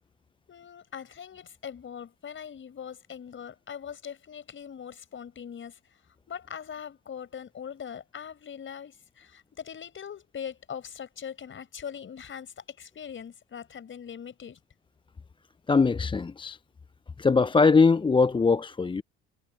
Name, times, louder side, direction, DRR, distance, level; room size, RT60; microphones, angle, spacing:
voice 1, 0.5-5.8 6.3-14.6, left 8 dB, 35° left, 5.4 m, -41 dB
voice 2, 15.7-16.6 17.2-19.0, left 4 dB, 15° left, 0.7 m, -21 dB
figure-of-eight pair, 60°, 33 cm